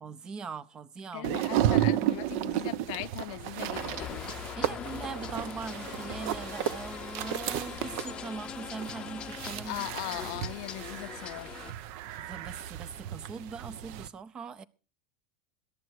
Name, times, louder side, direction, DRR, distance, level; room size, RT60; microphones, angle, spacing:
voice 1, 0.0-1.3 1.7-1.8 4.6-9.9 12.2-14.6, right 5 dB, 25° right, 0.6 m, -41 dB
voice 2, 1.1-4.3 9.7-11.7, left 21 dB, 65° left, 0.6 m, -39 dB
sound 1, 1.2-14.1, right 12 dB, 60° right, 0.8 m, -33 dB
sound 2, 3.7-11.7, left 9 dB, 25° left, 0.7 m, -41 dB
14.0 x 11.5 x 4.7 m
supercardioid pair, 145°, 3 cm